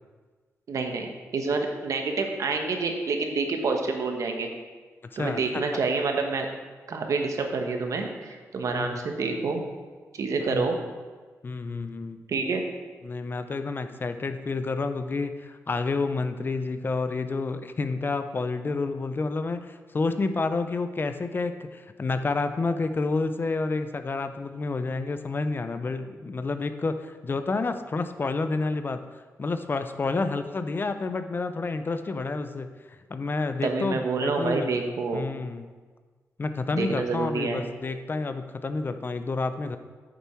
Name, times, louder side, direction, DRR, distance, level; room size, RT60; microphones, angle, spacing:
voice 1, 0.7-4.5 5.2-6.5 6.9-9.6 10.1-10.8 12.3-12.6 33.6-35.2 36.7-37.6, right 4 dB, 65° right, 4 dB, 1.2 m, -28 dB
voice 2, 5.2-5.6 8.7-9.0 10.5-10.8 11.4-12.2 13.0-29.0 29.4-34.7 35.1-35.7 36.4-39.8, left 3 dB, 35° left, 9 dB, 0.6 m, -29 dB
9.0 x 6.9 x 4.6 m, 1.4 s
cardioid pair, 85°, 6 cm